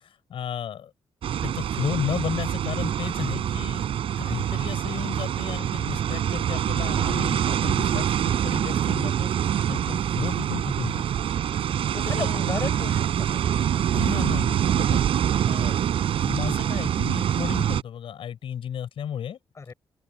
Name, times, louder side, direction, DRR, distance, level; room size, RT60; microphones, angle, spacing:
voice 1, 0.3-0.9 1.4-3.8 4.2-9.3 9.7-11.0 12.0-12.5 13.9-15.0 15.4-15.8 16.2-19.4, left 9 dB, 75° left, 6.7 m, -33 dB
sound 1, 1.2-17.8, right 10 dB, 90° right, 7.0 m, -25 dB
voice 2, 12.1-13.7 19.6-19.7, left 4 dB, 30° left, 5.3 m, -34 dB
open air
wide cardioid pair, 155°, 9 cm